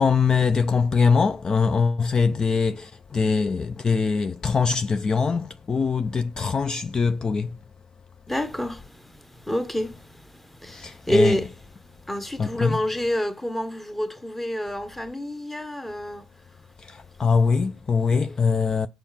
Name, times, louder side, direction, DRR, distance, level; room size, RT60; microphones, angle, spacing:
voice 1, 0.0-7.5 10.7-11.4 12.4-12.8 16.9-18.9, left 5 dB, 25° left, 0.4 m, -22 dB
voice 2, 8.3-11.5 12.1-16.3, equal, 5° left, 1.0 m, -28 dB
6.9 x 4.6 x 5.7 m
hypercardioid pair, 65°, 3 cm